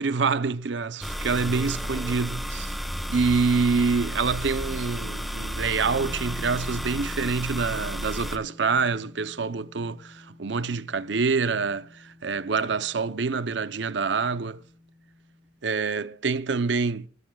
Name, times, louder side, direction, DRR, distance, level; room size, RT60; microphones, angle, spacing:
voice 1, 0.0-2.7 3.1-14.6 15.6-17.1, right 4 dB, 70° right, 0.7 m, -26 dB
sound 1, 1.0-8.4, equal, ahead, 1.2 m, -32 dB
sound 2, 5.8-15.6, left 1 dB, 20° left, 5.9 m, -49 dB
24.0 x 17.0 x 2.3 m
head